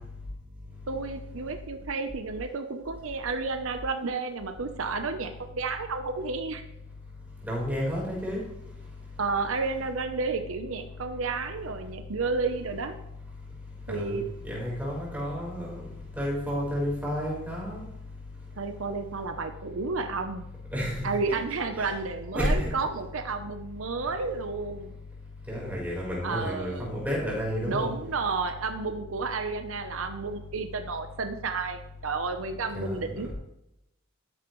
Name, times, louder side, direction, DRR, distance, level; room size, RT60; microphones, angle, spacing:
voice 1, 0.9-6.6 9.2-13.0 13.9-14.2 18.6-20.4 21.0-24.9 26.2-26.9 27.6-33.3, right 4 dB, 75° right, 7 dB, 0.8 m, -31 dB
voice 2, 7.4-8.4 13.9-15.9 16.2-17.8 20.7-21.1 21.7-21.9 22.3-22.7 25.5-27.9 32.7-33.3, equal, 10° right, -4 dB, 4.2 m, -31 dB
12.5 x 9.7 x 3.1 m, 0.86 s
head